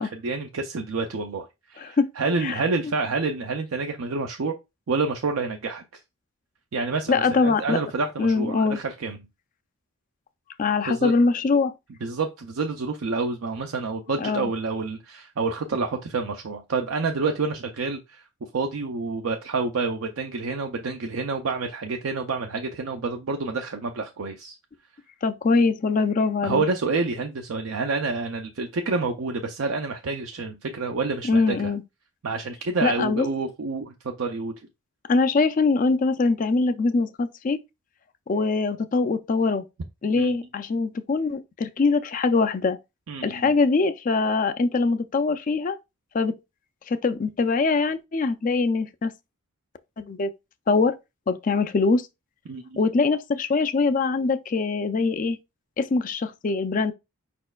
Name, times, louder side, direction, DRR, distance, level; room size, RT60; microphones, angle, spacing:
voice 1, 0.0-4.5 4.9-5.8 6.7-9.2 10.8-11.1 12.0-18.2 18.5-24.6 26.4-31.7 32.2-34.5 40.2-40.3 43.1-43.5 52.5-52.8, right 3 dB, 70° right, 0.5 m, -28 dB
voice 2, 1.8-2.1 2.4-2.6 7.1-7.8 8.2-8.8 10.6-11.7 14.2-14.5 25.2-26.6 31.3-31.8 32.8-33.3 35.1-37.6 38.3-39.6 40.0-42.8 43.2-45.8 46.1-46.4 46.9-49.1 50.0-50.3 50.7-51.0 51.3-52.1 52.8-55.4 55.8-56.9, left 4 dB, 35° left, 0.3 m, -23 dB
5.2 x 4.3 x 2.3 m
head